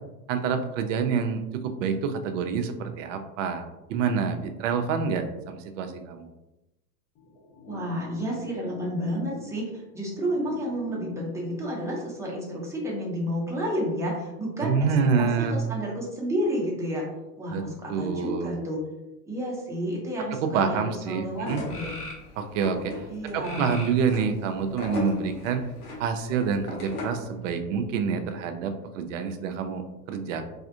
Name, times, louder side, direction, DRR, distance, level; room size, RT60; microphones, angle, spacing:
voice 1, 0.3-6.3 14.6-15.5 17.5-18.5 20.4-21.6 22.4-23.0 23.3-25.6 26.0-30.4, right 6 dB, 55° right, 7 dB, 0.5 m, -27 dB
sound 1, 7.1-12.1, left 3 dB, 40° left, 1.1 m, -45 dB
voice 2, 7.7-14.8 15.2-17.1 17.4-18.8 19.3-22.0 23.1-23.7, equal, 5° right, -4 dB, 0.9 m, -31 dB
sound 2, 21.0-21.1 21.7-22.3 23.4-24.0 24.9-25.5 26.8-26.9, left 1 dB, 90° left, 1.0 m, -40 dB
sound 3, 21.4-27.3, left 3 dB, 65° left, 1.3 m, -38 dB
3.4 x 2.4 x 2.6 m, 0.98 s
hypercardioid pair, 95°, 46 cm